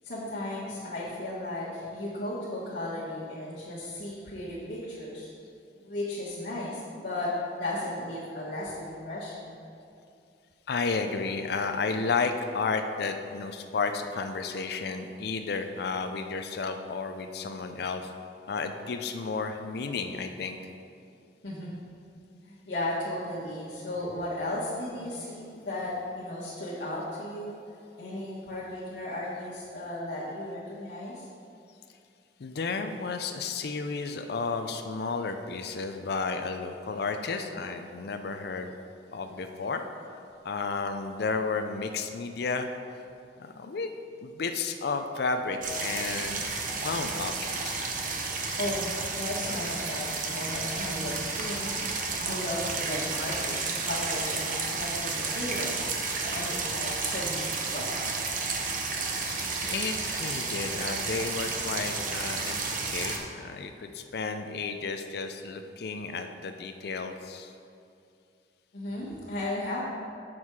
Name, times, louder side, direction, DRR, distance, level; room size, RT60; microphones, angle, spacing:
voice 1, 0.0-5.3 5.8-7.3 7.6-9.6 21.4-21.8 22.4-27.5 28.0-31.2 48.6-51.7 52.2-57.9 68.7-69.8, left 1 dB, 80° left, -10 dB, 1.5 m, -35 dB
voice 2, 10.7-18.1 18.5-20.7 32.4-38.7 39.1-42.7 42.9-43.0 43.4-43.9 44.2-47.9 59.0-67.5, left 4 dB, 65° left, 6 dB, 0.5 m, -32 dB
sound 1, 45.6-63.2, right 4 dB, 50° right, 0.9 m, -32 dB
7.4 x 6.2 x 4.7 m, 2.5 s
head